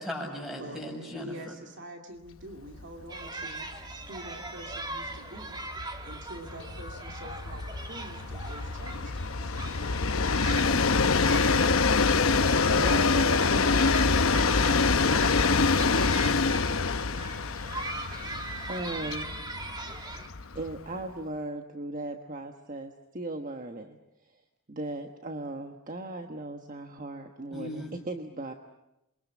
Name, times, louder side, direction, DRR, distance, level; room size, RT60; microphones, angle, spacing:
voice 1, 0.0-1.5 27.5-27.9, left 1 dB, ahead, 1 dB, 7.4 m, -37 dB
voice 2, 0.6-3.7 4.1-5.6 6.0-9.5, right 1 dB, 60° right, 3 dB, 2.6 m, -45 dB
Train, 2.7-2.9 3.2-3.3 3.6-21.0, left 4 dB, 80° left, 0.9 m, -26 dB
sound 1, 3.1-20.3, right 2 dB, 20° right, 1.7 m, -41 dB
voice 3, 12.6-13.9 15.5-16.0 18.7-19.3 20.5-24.0 24.2-24.4 24.7-28.5, right 2 dB, 40° right, 5 dB, 1.3 m, -38 dB
28.0 x 23.0 x 7.3 m, 0.89 s
head